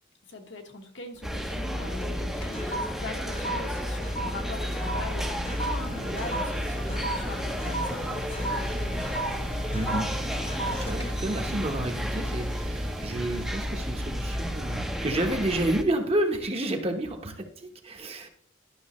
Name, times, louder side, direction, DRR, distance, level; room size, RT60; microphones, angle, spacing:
voice 1, 0.3-9.1, left 2 dB, 70° left, 3 dB, 1.4 m, -41 dB
sound 1, 1.2-1.7 2.0-12.6 13.0-13.3, right 1 dB, 30° left, 1.0 m, -37 dB
sound 2, 1.2-15.8, equal, ahead, 0.6 m, -32 dB
sound 3, 4.1-15.7, equal, 80° right, 0.7 m, -45 dB
voice 2, 9.7-10.1 10.7-18.3, right 1 dB, 30° right, 4 dB, 1.0 m, -30 dB
12.0 x 6.1 x 3.1 m, 0.66 s
head